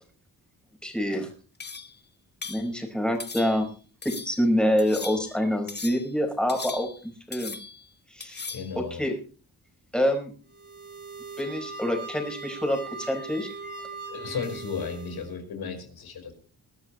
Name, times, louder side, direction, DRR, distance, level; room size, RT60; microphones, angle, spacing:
voice 1, 0.8-1.3 2.5-3.7 4.2-7.6 8.1-8.5 9.0-9.1 9.9-10.3 11.4-13.7, equal, ahead, 3 dB, 4.8 m, -26 dB
sound 1, 1.6-2.0 2.4-2.7 3.2-3.7 4.0-4.4 4.8-5.4 5.7-6.1 6.5-7.1 7.3-7.8 8.2-8.7, left 4 dB, 30° left, 1.4 m, -39 dB
voice 2, 8.5-9.0 14.1-16.3, left 6 dB, 90° left, 6 dB, 5.1 m, -34 dB
sound 2, 10.5-15.3, right 4 dB, 25° right, 3.9 m, -40 dB
22.0 x 12.5 x 3.1 m, 0.38 s
wide cardioid pair, 120°, 36 cm